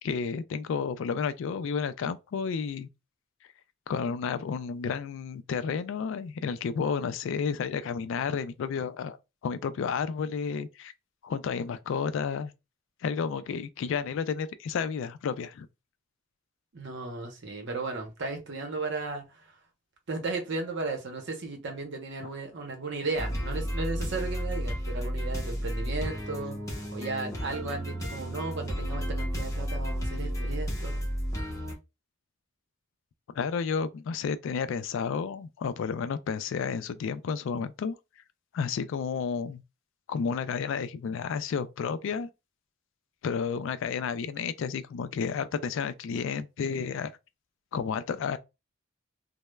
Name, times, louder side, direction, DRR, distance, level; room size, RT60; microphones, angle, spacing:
voice 1, 0.0-2.9 3.9-9.2 9.4-10.9 11.2-12.5 13.0-15.7 22.2-22.3 33.4-37.9 38.5-39.6 40.1-42.3 43.2-47.1 47.7-48.4, left 6 dB, 70° left, 0.3 m, -31 dB
voice 2, 16.7-19.3 20.1-26.6 26.9-31.1, right 3 dB, 65° right, 0.7 m, -35 dB
sound 1, 23.2-31.7, equal, 15° left, 0.8 m, -32 dB
3.1 x 2.0 x 2.2 m
head